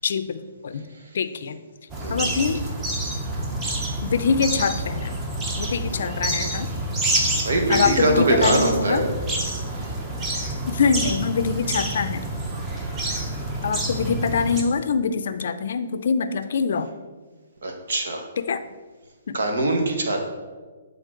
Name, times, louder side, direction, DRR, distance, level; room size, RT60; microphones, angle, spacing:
voice 1, 0.0-0.9 1.1-1.6 2.1-2.6 4.0-5.2 5.6-6.7 7.7-9.0 10.7-12.3 13.6-16.9 18.4-18.6 19.3-19.4, left 5 dB, 65° left, 11 dB, 0.4 m, -24 dB
sound 1, 1.9-14.6, right 1 dB, 15° right, 0.7 m, -28 dB
voice 2, 2.0-2.3 7.4-9.0 9.8-9.9 17.6-18.2 19.3-20.2, right 2 dB, 75° right, 3 dB, 1.2 m, -22 dB
8.1 x 3.7 x 3.8 m, 1.4 s
hypercardioid pair, 155°, 0 cm